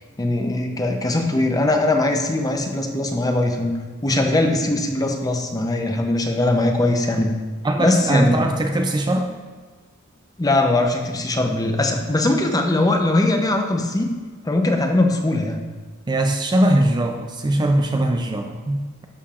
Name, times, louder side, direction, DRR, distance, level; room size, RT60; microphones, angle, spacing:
voice 1, 0.2-3.7 4.0-7.3 7.8-8.4 10.4-14.1 14.4-15.6, left 2 dB, 15° left, 4 dB, 0.6 m, -20 dB
voice 2, 7.6-9.3 16.1-19.0, right 1 dB, 20° right, 4 dB, 0.4 m, -21 dB
11.0 x 6.5 x 2.5 m, 1.4 s
head